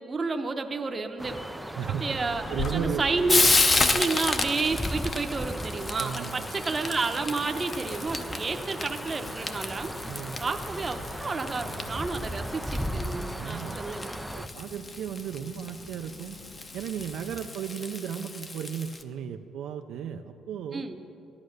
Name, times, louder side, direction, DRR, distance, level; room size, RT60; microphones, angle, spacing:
voice 1, 0.0-3.4 3.9-9.9 10.4-14.2 20.7-21.0, right 3 dB, 20° right, 6 dB, 0.8 m, -31 dB
sound 1, 1.2-14.5, equal, 5° right, 0.3 m, -37 dB
Frying (food), 2.1-19.0, left 3 dB, 20° left, 0.7 m, -32 dB
sound 2, 2.2-17.5, left 2 dB, 40° left, 1.7 m, -45 dB
voice 2, 2.5-3.0 3.7-4.0 5.9-6.4 10.1-10.3 13.4-13.8 14.3-16.4 16.7-20.9, right 8 dB, 70° right, 5 dB, 0.5 m, -35 dB
14.5 x 11.5 x 6.5 m, 3.0 s
cardioid pair, 160°, 0 cm